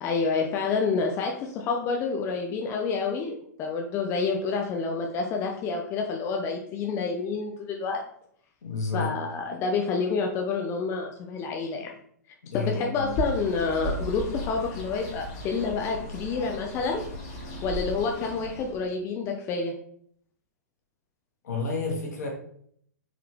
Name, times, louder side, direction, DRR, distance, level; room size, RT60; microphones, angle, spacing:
voice 1, 0.0-8.0 8.9-11.9 12.5-17.0 17.6-19.7, left 4 dB, 30° left, 1 dB, 0.5 m, -28 dB
voice 2, 8.6-9.1 12.4-13.1 21.4-22.3, left 3 dB, 70° left, 0 dB, 1.4 m, -30 dB
Bird, 13.0-18.9, equal, 45° left, 1.2 m, -36 dB
4.0 x 2.8 x 3.2 m, 0.64 s
hypercardioid pair, 115°, 9 cm